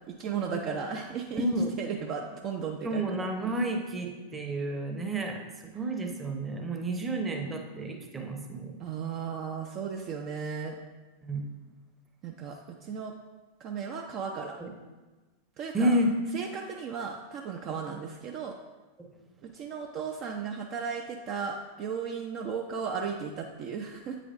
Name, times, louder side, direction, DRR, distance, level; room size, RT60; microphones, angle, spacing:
voice 1, 0.1-1.4 1.8-3.3 8.8-10.8 12.2-13.1 13.6-14.6 15.6-16.0 16.3-18.6 19.4-24.2, right 6 dB, 35° right, 2 dB, 0.4 m, -35 dB
voice 2, 1.3-1.8 2.8-8.8 11.2-11.5 14.6-14.7 15.7-16.2 19.0-19.1, right 1 dB, 15° right, 3 dB, 0.8 m, -30 dB
8.4 x 5.0 x 2.5 m, 1.2 s
figure-of-eight pair, 90°, 0 cm